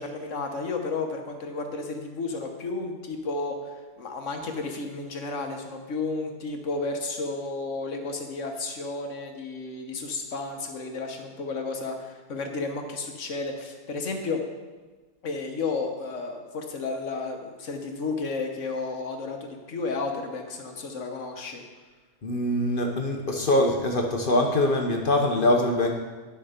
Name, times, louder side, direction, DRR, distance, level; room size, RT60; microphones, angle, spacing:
voice 1, 0.0-14.4 15.2-21.6, left 3 dB, 70° left, 4 dB, 1.5 m, -32 dB
voice 2, 22.2-25.9, left 1 dB, 45° left, 2 dB, 1.1 m, -23 dB
10.5 x 6.7 x 5.0 m, 1.3 s
omnidirectional pair, 1.3 m